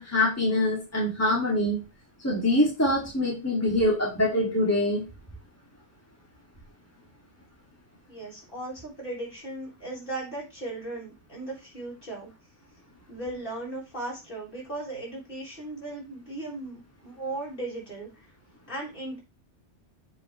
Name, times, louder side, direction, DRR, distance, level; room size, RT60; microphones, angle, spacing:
voice 1, 0.0-1.8 2.2-5.0, left 1 dB, 10° left, -4 dB, 2.4 m, -24 dB
voice 2, 8.1-12.3 13.1-18.3 18.7-19.2, right 2 dB, 45° left, -5 dB, 5.2 m, -37 dB
8.5 x 5.5 x 3.2 m, 0.26 s
omnidirectional pair, 1.2 m